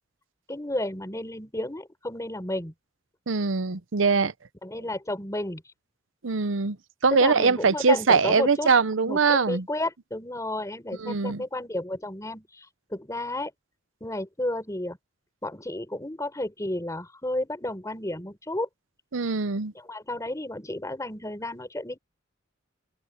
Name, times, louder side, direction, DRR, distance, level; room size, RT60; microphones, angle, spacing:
voice 1, 0.5-2.7 4.6-5.6 7.1-8.7 9.0-13.5 14.0-15.0 15.4-18.7 19.7-22.0, left 1 dB, 15° left, 4.4 m, -32 dB
voice 2, 3.3-4.3 6.2-6.8 7.0-9.7 11.0-11.4 19.1-19.7, right 4 dB, 90° right, 0.8 m, -22 dB
open air
head